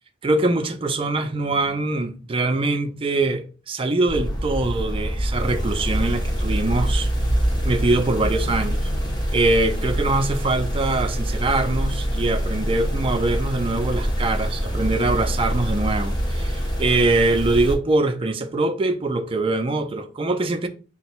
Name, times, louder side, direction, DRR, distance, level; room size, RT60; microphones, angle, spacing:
voice 1, 0.2-7.1 7.6-8.8 9.3-20.7, right 2 dB, 30° right, 0.4 m, -23 dB
sound 1, 4.1-17.8, equal, 25° left, 0.8 m, -25 dB
3.9 x 2.2 x 4.4 m
head